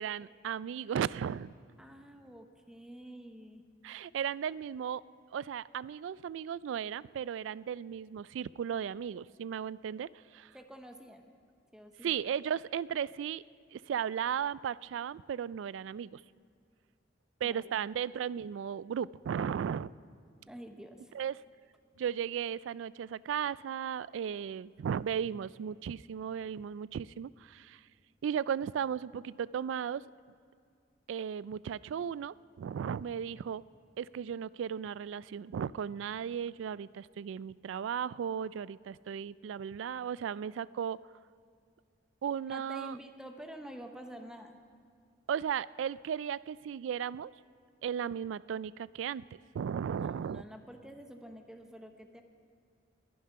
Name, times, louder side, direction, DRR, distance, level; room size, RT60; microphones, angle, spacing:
voice 1, 0.0-1.5 3.8-5.0 5.3-10.5 12.0-13.4 13.7-16.2 17.4-19.9 21.1-21.4 22.0-27.8 28.2-30.0 31.1-33.6 34.0-41.0 42.2-43.0 45.3-47.3 47.8-49.2 49.5-50.4, right 8 dB, 85° right, 20 dB, 0.3 m, -35 dB
voice 2, 1.8-3.6 10.5-11.2 11.7-12.1 17.4-17.8 20.5-21.1 42.5-44.6 49.9-52.2, equal, 5° right, 5 dB, 0.8 m, -48 dB
20.0 x 10.5 x 5.8 m, 2.2 s
head